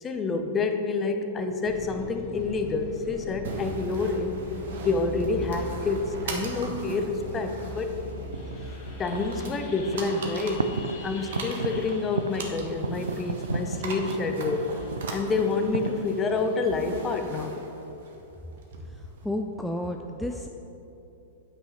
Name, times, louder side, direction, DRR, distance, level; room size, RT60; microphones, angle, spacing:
voice 1, 0.0-4.5 4.8-7.9 9.0-10.8 11.0-14.8 15.1-17.5, left 4 dB, 25° left, 7 dB, 0.8 m, -28 dB
sound 1, 1.6-17.2, left 1 dB, 45° left, 1.8 m, -42 dB
sound 2, 3.4-19.2, right 3 dB, 65° right, 1.4 m, -40 dB
sound 3, 8.1-16.4, right 4 dB, 90° right, 0.4 m, -35 dB
voice 2, 18.8-20.5, left 1 dB, ahead, 3 dB, 0.4 m, -32 dB
8.7 x 5.7 x 5.6 m, 3.0 s
hypercardioid pair, 115°, 0 cm